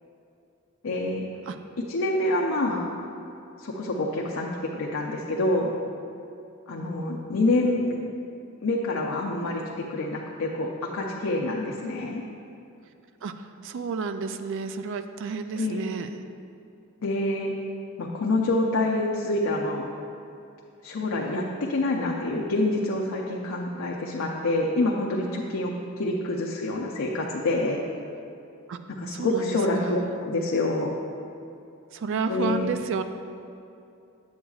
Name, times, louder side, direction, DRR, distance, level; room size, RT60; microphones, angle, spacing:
voice 1, 0.8-1.2 1.9-2.9 3.6-5.7 6.7-8.0 8.6-12.2 15.6-15.8 17.0-17.5 18.0-19.8 20.8-27.8 29.0-31.0 32.3-32.7, left 2 dB, 80° left, -2 dB, 0.6 m, -27 dB
voice 2, 13.2-16.1 28.7-28.8 29.1-30.1 31.9-33.0, right 5 dB, 65° right, 9 dB, 0.4 m, -31 dB
8.5 x 7.9 x 2.4 m, 2.7 s
head